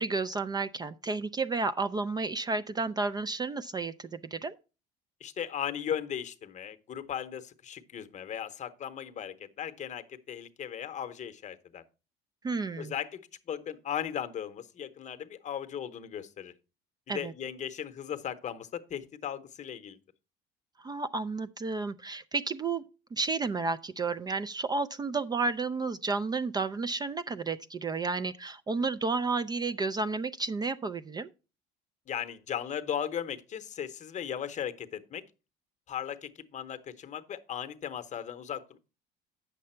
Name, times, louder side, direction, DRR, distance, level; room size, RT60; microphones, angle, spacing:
voice 1, 0.0-4.6 12.4-12.9 17.1-17.3 20.8-22.8 23.1-31.3, right 4 dB, 20° right, 0.3 m, -32 dB
voice 2, 5.2-11.8 12.8-13.2 13.5-16.5 17.1-20.0 32.1-35.2 35.9-38.8, left 9 dB, 40° left, 0.8 m, -37 dB
8.4 x 6.7 x 4.3 m
cardioid pair, 110°, 19 cm